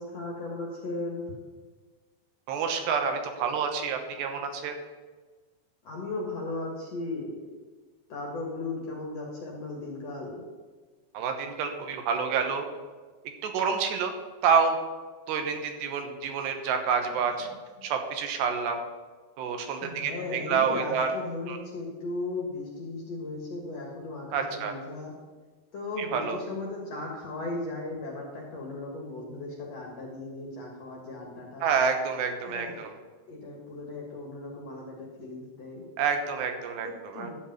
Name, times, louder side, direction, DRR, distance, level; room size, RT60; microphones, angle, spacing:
voice 1, 0.0-1.4 5.8-7.5 8.1-10.4 17.4-17.9 19.8-25.1 25.7-31.7 32.5-32.8 33.3-35.9 36.8-37.3, left 2 dB, 50° left, -1 dB, 2.2 m, -36 dB
voice 2, 2.5-4.8 11.1-12.6 13.4-14.1 14.4-14.8 15.3-17.5 17.8-18.8 19.4-21.1 21.5-21.6 24.3-24.7 26.1-26.4 31.6-32.9 36.0-36.9 37.1-37.3, right 6 dB, 80° right, 5 dB, 3.2 m, -28 dB
12.5 x 5.4 x 8.8 m, 1.4 s
omnidirectional pair, 5.0 m